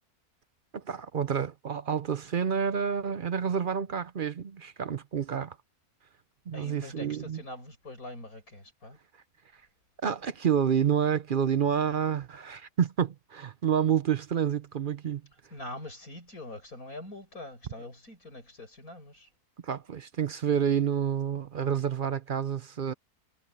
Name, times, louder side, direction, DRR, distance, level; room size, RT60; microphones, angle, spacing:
voice 1, 0.7-5.6 6.5-7.4 10.0-15.2 19.6-22.9, right 8 dB, 55° right, 0.5 m, -29 dB
voice 2, 6.5-9.0 15.5-19.3, left 1 dB, 60° left, 8.3 m, -43 dB
omnidirectional pair, 1.7 m